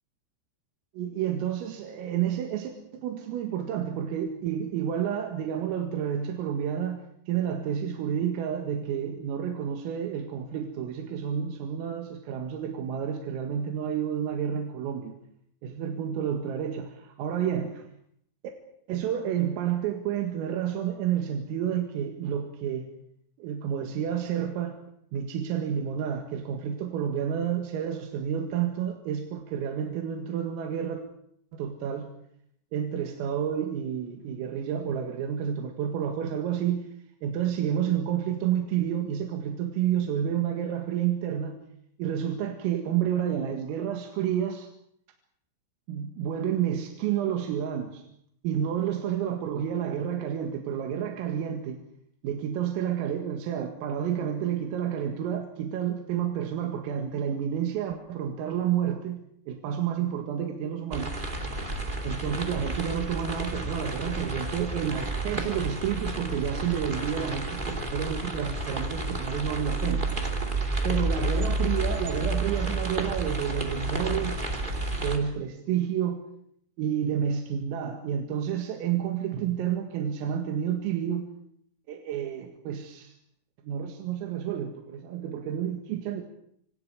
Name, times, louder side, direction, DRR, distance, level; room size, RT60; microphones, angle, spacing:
voice 1, 0.9-15.2 15.6-17.9 18.9-22.9 23.4-24.8 25.1-31.0 31.5-32.2 32.7-36.9 37.2-41.6 42.0-44.7 45.9-48.0 48.4-51.8 52.2-59.2 59.5-61.2 62.0-70.1 70.8-74.4 75.0-76.2 76.8-81.3 81.9-83.1 83.6-86.2, right 9 dB, 85° right, 3 dB, 4.6 m, -30 dB
sound 1, 60.9-75.2, right 2 dB, 20° right, 1.3 m, -31 dB
28.0 x 26.0 x 5.0 m, 0.69 s
omnidirectional pair, 5.9 m